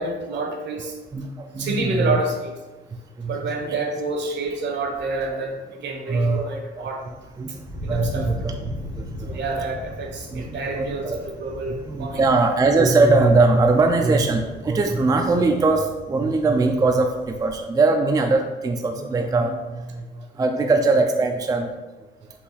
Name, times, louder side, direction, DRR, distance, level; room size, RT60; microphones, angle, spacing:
voice 1, 0.0-0.9 1.5-2.5 3.2-7.0 7.8-8.3 9.3-12.2, right 3 dB, 60° right, 2 dB, 0.8 m, -28 dB
voice 2, 1.1-2.2 3.2-3.8 6.1-6.9 7.4-7.5 7.9-8.5 9.3-9.4 10.3-11.2 11.7-20.0 20.4-21.7, right 3 dB, 20° right, 4 dB, 0.3 m, -21 dB
Thunder, 7.0-17.6, left 1 dB, 45° left, 1.1 m, -38 dB
4.1 x 2.3 x 4.0 m, 1.2 s
cardioid pair, 90°, 20 cm